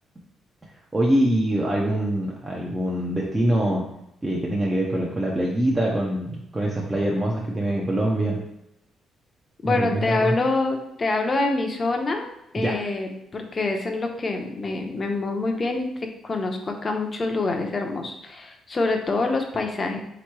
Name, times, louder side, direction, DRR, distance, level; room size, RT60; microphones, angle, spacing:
voice 1, 0.9-3.9 4.2-8.4 9.6-10.4 12.6-12.8, right 1 dB, 20° right, -4 dB, 0.7 m, -24 dB
voice 2, 9.6-12.3 12.5-20.0, left 3 dB, 35° left, 3 dB, 0.7 m, -26 dB
3.5 x 3.1 x 4.6 m, 0.82 s
cardioid pair, 90°, 0 cm